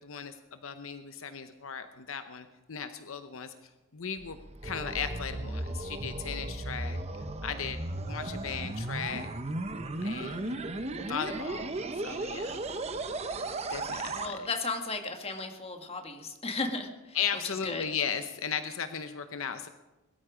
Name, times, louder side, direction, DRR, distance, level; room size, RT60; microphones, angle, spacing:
voice 1, 0.0-3.5 3.9-4.4 4.6-7.0 7.4-7.8 8.1-9.3 10.0-10.6 11.1-12.5 13.7-14.4 17.1-19.7, left 7 dB, 70° left, 9 dB, 0.8 m, -36 dB
sound 1, 4.2-14.3, right 2 dB, 30° right, 1.0 m, -35 dB
voice 2, 14.2-17.2 17.4-17.9, left 3 dB, 30° left, 4 dB, 1.8 m, -35 dB
21.0 x 13.0 x 5.1 m, 1.1 s
head